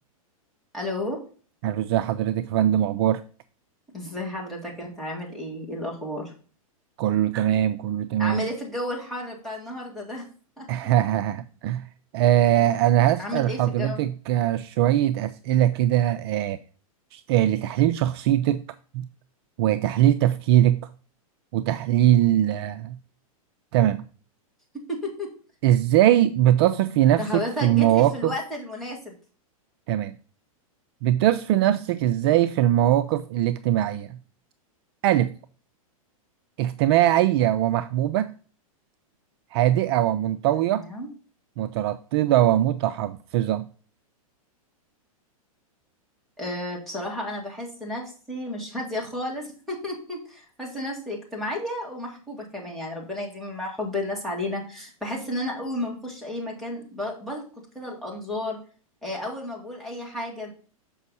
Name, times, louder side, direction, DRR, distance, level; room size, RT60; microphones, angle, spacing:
voice 1, 0.7-1.2 3.9-6.3 8.2-10.3 10.6-10.7 13.2-14.0 24.7-25.3 27.2-29.2 40.7-41.1 46.4-57.4 57.7-58.6 59.0-60.5, left 1 dB, ahead, -4 dB, 2.3 m, -32 dB
voice 2, 1.6-3.2 7.0-8.5 10.7-11.9 12.1-16.6 17.1-18.6 18.9-19.1 19.6-20.8 21.5-23.0 23.7-24.0 25.6-28.3 29.9-30.1 31.0-34.2 35.0-35.3 36.6-38.3 39.5-40.9 41.6-43.7, right 12 dB, 45° right, 11 dB, 0.4 m, -21 dB
6.9 x 5.3 x 4.1 m, 0.40 s
hypercardioid pair, 140°, 19 cm